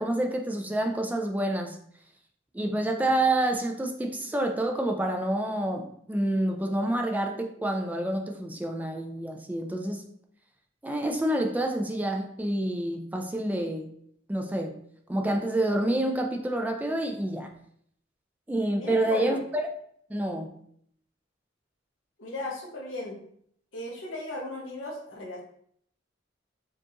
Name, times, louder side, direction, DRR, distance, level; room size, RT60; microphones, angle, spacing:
voice 1, 0.0-1.8 2.5-10.1 10.8-13.9 14.3-14.7 15.1-17.5 18.5-19.4 20.1-20.5, right 1 dB, 10° right, 3 dB, 0.3 m, -28 dB
voice 2, 18.8-19.4 22.2-23.2 23.7-25.4, left 1 dB, 90° left, -1 dB, 1.0 m, -36 dB
4.5 x 2.4 x 2.9 m, 0.66 s
head